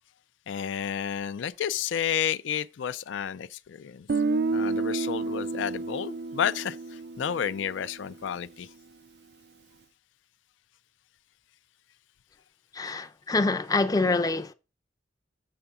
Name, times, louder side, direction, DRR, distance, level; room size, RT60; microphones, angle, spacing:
voice 1, 0.5-4.1 4.5-8.7, left 8 dB, 80° left, 0.4 m, -31 dB
Guitar, 4.1-8.0, right 3 dB, 60° right, 0.4 m, -30 dB
voice 2, 12.7-14.5, left 3 dB, 20° left, 0.5 m, -26 dB
6.9 x 6.7 x 3.5 m
head